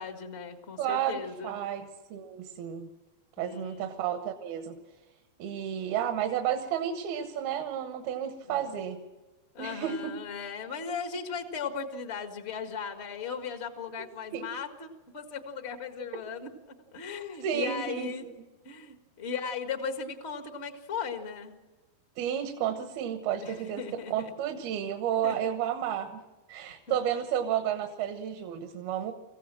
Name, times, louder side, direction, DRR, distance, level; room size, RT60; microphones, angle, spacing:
voice 1, 0.0-1.5 3.4-3.9 8.5-8.6 9.5-16.5 16.9-18.2 18.6-21.5 23.4-24.3 25.2-25.3 26.9-27.0, left 6 dB, 60° left, 5 dB, 0.6 m, -37 dB
voice 2, 0.8-2.9 3.4-4.8 5.4-9.0 9.6-10.1 14.3-14.5 17.4-18.3 22.2-26.2 26.5-29.1, right 9 dB, 85° right, 6 dB, 3.1 m, -32 dB
25.0 x 15.5 x 7.6 m, 1.2 s
omnidirectional pair, 4.2 m